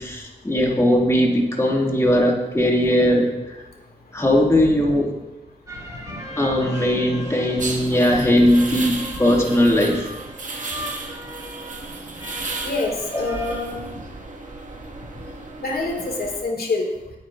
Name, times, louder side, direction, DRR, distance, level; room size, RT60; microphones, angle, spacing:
voice 1, 0.0-3.6 4.1-5.1 6.4-10.1, equal, 20° left, -1 dB, 2.3 m, -19 dB
sound 1, 5.7-13.6, right 1 dB, 20° right, 2.1 m, -38 dB
sound 2, 7.6-16.4, right 3 dB, 55° right, 2.0 m, -34 dB
voice 2, 12.6-13.9 15.6-16.9, left 3 dB, 75° left, 0 dB, 2.2 m, -26 dB
18.5 x 9.3 x 2.6 m, 1.1 s
cardioid pair, 75°, 16 cm